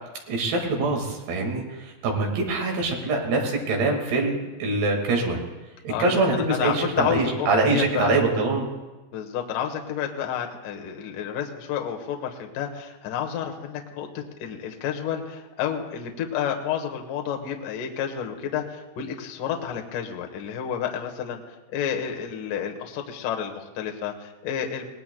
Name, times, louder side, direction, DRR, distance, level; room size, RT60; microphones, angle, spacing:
voice 1, 0.3-5.4 5.8-8.7, right 3 dB, 60° right, 1 dB, 3.7 m, -24 dB
voice 2, 5.9-8.2 9.1-21.4 21.7-24.9, left 8 dB, 80° left, 3 dB, 1.9 m, -30 dB
22.0 x 18.5 x 2.2 m, 1.1 s
omnidirectional pair, 5.6 m